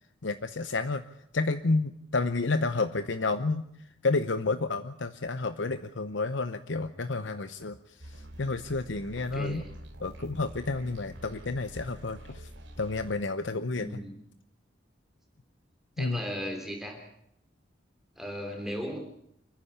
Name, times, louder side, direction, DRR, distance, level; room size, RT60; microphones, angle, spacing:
voice 1, 0.2-1.0 1.3-3.7 4.0-7.8 8.4-9.6 10.0-12.5 12.8-13.9 16.0-16.2, left 3 dB, 85° left, 10 dB, 0.9 m, -30 dB
sound 1, 8.0-13.2, right 1 dB, 85° right, 3.3 m, -47 dB
voice 2, 9.3-9.7 13.8-14.2 16.0-17.0 18.2-19.0, equal, ahead, 2 dB, 3.4 m, -36 dB
29.0 x 10.0 x 9.8 m, 0.74 s
head